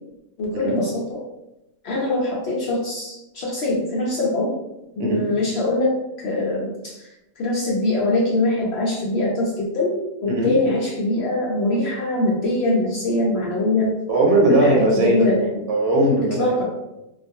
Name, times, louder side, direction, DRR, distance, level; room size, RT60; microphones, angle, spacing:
voice 1, 0.4-1.2 1.8-4.6 5.0-7.1 7.4-13.9 14.5-15.5 16.3-16.6, left 2 dB, 75° left, -4 dB, 0.6 m, -23 dB
voice 2, 14.1-15.3 15.7-16.6, right 1 dB, 85° right, -1 dB, 1.1 m, -19 dB
2.3 x 2.3 x 2.6 m, 0.93 s
omnidirectional pair, 1.6 m